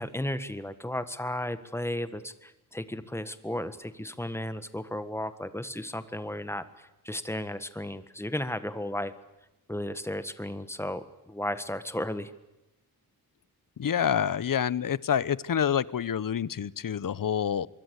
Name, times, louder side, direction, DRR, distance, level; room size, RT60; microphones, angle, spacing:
voice 1, 0.0-9.1 9.7-12.3, left 1 dB, 5° left, 12 dB, 1.6 m, -34 dB
voice 2, 13.8-17.7, left 8 dB, 65° left, 20 dB, 0.9 m, -27 dB
25.0 x 23.0 x 8.2 m, 0.98 s
wide cardioid pair, 150°, 36 cm